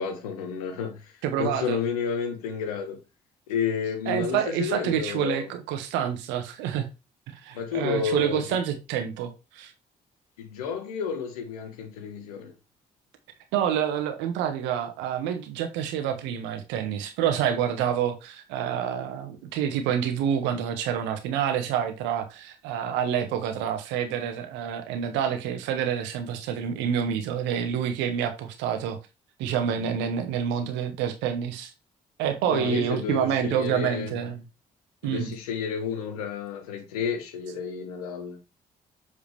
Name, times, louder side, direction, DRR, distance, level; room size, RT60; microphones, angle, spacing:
voice 1, 0.0-3.0 3.5-5.5 7.5-8.5 10.4-12.5 32.5-34.2 35.0-38.4, left 6 dB, 85° left, 1.3 m, -31 dB
voice 2, 1.2-1.8 4.1-6.9 7.4-9.7 13.5-29.0 29.4-31.7 32.2-34.4 35.0-35.3, right 9 dB, 75° right, 1.3 m, -28 dB
7.6 x 4.9 x 3.3 m
hypercardioid pair, 45°, 19 cm